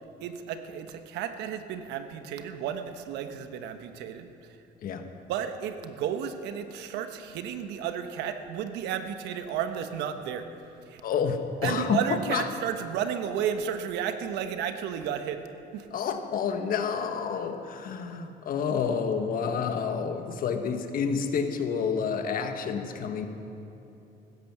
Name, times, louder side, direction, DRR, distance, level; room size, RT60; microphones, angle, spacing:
voice 1, 0.2-4.3 5.3-10.5 10.9-11.0 11.6-15.4 15.7-15.9, right 8 dB, 90° right, 8 dB, 1.1 m, -32 dB
voice 2, 11.0-12.0 12.3-12.4 15.9-23.3, left 6 dB, 60° left, 6 dB, 1.4 m, -29 dB
15.5 x 13.5 x 6.0 m, 2.9 s
cardioid pair, 110°, 17 cm